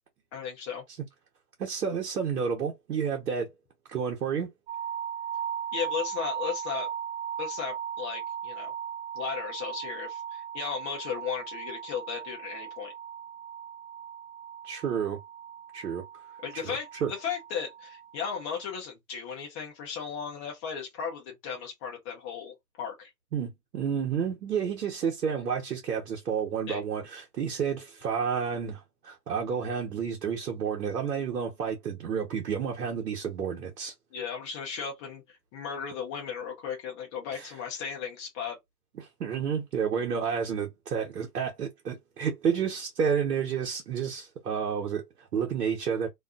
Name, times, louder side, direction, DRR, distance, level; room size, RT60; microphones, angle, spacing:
voice 1, 0.3-0.8 5.7-6.9 7.4-8.7 9.1-12.9 16.4-23.1 26.7-26.8 34.1-38.6, left 7 dB, 20° left, 0.7 m, -36 dB
voice 2, 1.6-3.5 3.9-4.5 14.6-15.2 15.7-16.0 16.5-17.1 23.3-33.9 37.3-37.5 39.0-46.1, right 7 dB, 70° right, 1.0 m, -30 dB
sound 1, 4.7-18.7, right 9 dB, 35° right, 0.5 m, -38 dB
2.5 x 2.5 x 2.4 m
figure-of-eight pair, 130°, 50 cm